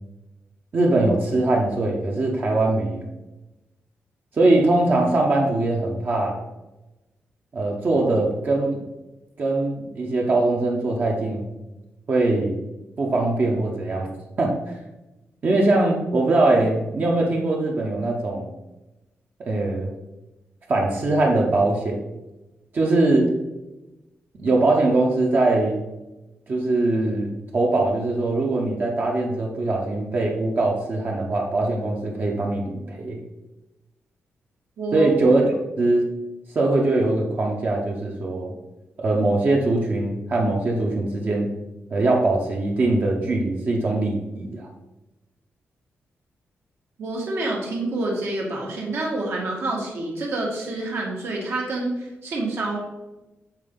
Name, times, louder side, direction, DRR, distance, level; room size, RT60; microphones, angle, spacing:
voice 1, 0.7-3.0 4.3-6.4 7.5-8.8 9.4-11.4 12.1-12.6 13.0-14.1 14.4-14.6 15.4-18.5 19.5-19.9 20.7-22.0 22.7-23.3 24.4-25.8 26.5-33.2 34.9-35.4 35.8-36.1 36.5-38.5 39.0-41.5 41.9-44.7, right 2 dB, 45° right, -1 dB, 0.9 m, -21 dB
voice 2, 34.8-35.1 47.0-52.8, right 2 dB, 65° right, -2 dB, 1.5 m, -27 dB
7.2 x 3.9 x 3.7 m, 1.0 s
wide cardioid pair, 160°, 5 cm